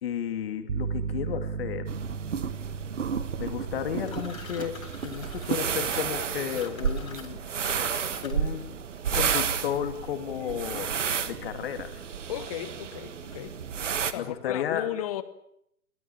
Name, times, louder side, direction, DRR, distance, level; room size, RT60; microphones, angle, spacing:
voice 1, 0.0-1.9 3.4-7.4 8.0-8.8 9.1-10.9 11.2-12.0 14.2-14.9, left 9 dB, 40° left, 2.7 m, -33 dB
sound 1, 0.7-8.4, right 5 dB, 75° right, 1.1 m, -38 dB
sound 2, 1.9-14.1, right 7 dB, 50° right, 1.7 m, -32 dB
sound 3, 4.0-8.6, left 6 dB, 60° left, 3.9 m, -46 dB
voice 2, 12.3-13.6 14.1-15.2, left 12 dB, 25° left, 1.1 m, -35 dB
24.0 x 17.5 x 8.8 m
figure-of-eight pair, 130°, 46 cm